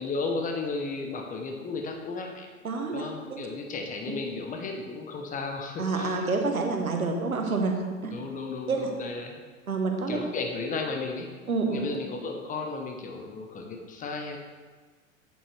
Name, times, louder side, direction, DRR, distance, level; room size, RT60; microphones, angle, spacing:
voice 1, 0.0-2.5 2.9-6.2 8.1-9.4 10.1-11.3 11.6-14.4, left 3 dB, 20° left, 3 dB, 0.8 m, -34 dB
voice 2, 2.6-3.5 5.8-8.1 8.7-8.9 9.7-10.2 11.5-11.8, right 3 dB, 80° right, 3 dB, 1.2 m, -28 dB
8.4 x 7.3 x 3.2 m, 1.4 s
figure-of-eight pair, 90°, 41 cm